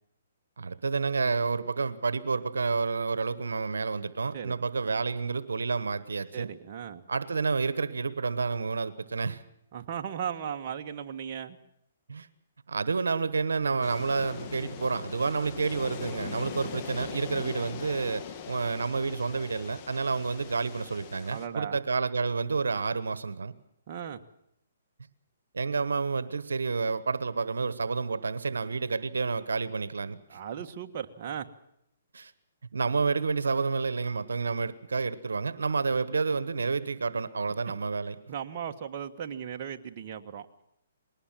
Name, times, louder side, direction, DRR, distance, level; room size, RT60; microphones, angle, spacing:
voice 1, 0.6-6.5 7.1-9.4 12.1-12.3 12.7-23.5 25.5-30.4 32.1-32.3 32.7-38.2, right 4 dB, 85° right, 15 dB, 1.2 m, -29 dB
voice 2, 6.3-7.0 9.7-11.6 21.2-21.8 23.9-24.2 30.3-31.5 38.3-40.5, right 8 dB, 45° right, 5 dB, 1.5 m, -37 dB
sound 1, 13.8-21.5, left 8 dB, 35° left, 2.1 m, -41 dB
21.0 x 18.5 x 7.5 m, 0.79 s
hypercardioid pair, 145°, 0 cm